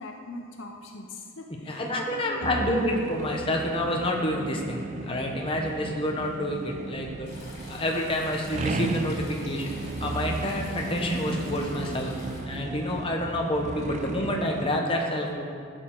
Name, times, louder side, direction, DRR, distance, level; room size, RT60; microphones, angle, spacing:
voice 1, 0.0-3.0, left 2 dB, 65° left, 2 dB, 0.7 m, -41 dB
voice 2, 1.7-7.3 7.7-15.5, left 1 dB, 25° left, 0 dB, 1.0 m, -28 dB
sound 1, 2.4-14.8, right 3 dB, 35° right, 0.3 m, -35 dB
sound 2, 7.3-12.4, left 2 dB, 50° left, 2.4 m, -47 dB
12.5 x 6.5 x 3.9 m, 2.2 s
head